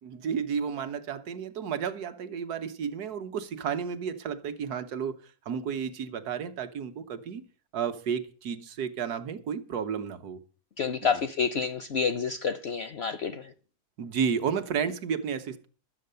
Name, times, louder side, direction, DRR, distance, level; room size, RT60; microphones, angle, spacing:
voice 1, 0.0-7.4 7.7-10.4 11.0-11.2 14.0-15.7, right 7 dB, 70° right, 1.5 m, -32 dB
voice 2, 10.8-13.5, left 6 dB, 60° left, 0.7 m, -29 dB
12.0 x 7.5 x 6.7 m
omnidirectional pair, 1.7 m